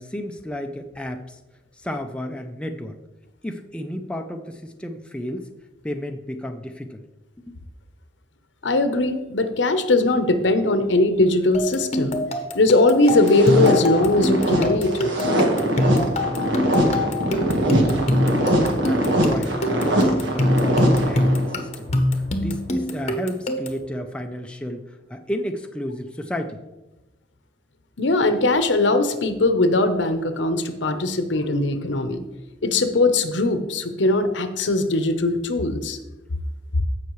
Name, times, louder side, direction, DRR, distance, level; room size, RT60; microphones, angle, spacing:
voice 1, 0.0-1.4 1.7-3.0 3.4-5.5 5.8-7.0 7.5-7.6 16.1-26.6, equal, 5° left, 4 dB, 0.5 m, -32 dB
voice 2, 8.6-12.2 12.5-15.3 28.0-32.2 32.6-36.0, left 2 dB, 80° left, 9 dB, 0.8 m, -20 dB
sound 1, 11.5-23.9, left 1 dB, 35° left, 0.8 m, -25 dB
sound 2, 13.1-21.7, right 1 dB, 75° right, 1.5 m, -22 dB
15.0 x 5.7 x 3.1 m, 1.1 s
head